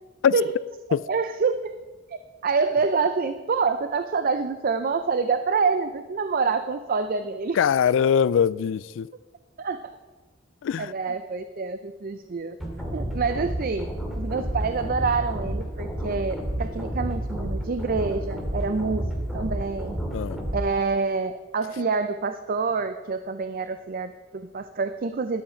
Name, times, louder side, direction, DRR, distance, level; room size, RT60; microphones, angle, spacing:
voice 1, 1.1-1.7 2.4-7.6 9.6-9.9 10.8-12.6 12.9-19.1 19.3-20.0 20.5-25.4, right 4 dB, 45° right, 0.5 m, -27 dB
voice 2, 7.5-9.1 10.6-10.9 20.1-20.4, left 7 dB, 65° left, 0.3 m, -22 dB
sound 1, 12.6-20.6, right 1 dB, ahead, 2.1 m, -30 dB
13.0 x 11.0 x 4.4 m
head